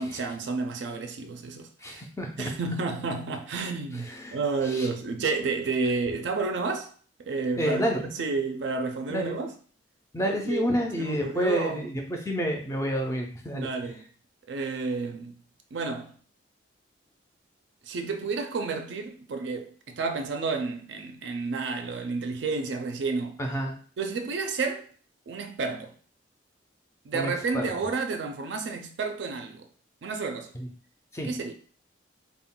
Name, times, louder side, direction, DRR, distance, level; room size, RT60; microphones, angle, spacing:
voice 1, 0.0-2.0 2.4-6.9 7.2-7.9 8.1-9.5 10.2-10.7 11.0-11.9 13.5-14.0 14.5-15.3 15.7-16.1 17.8-23.4 24.0-24.9 25.3-25.9 27.0-29.7 30.0-30.5 31.2-31.5, right 4 dB, 65° right, 0.4 m, -31 dB
voice 2, 1.8-2.5 4.0-4.4 4.7-4.9 7.6-8.0 9.1-9.4 10.1-13.7 23.4-23.7 27.1-27.7 30.5-30.7 31.1-31.3, equal, 15° left, 0.4 m, -29 dB
2.2 x 2.1 x 3.6 m
head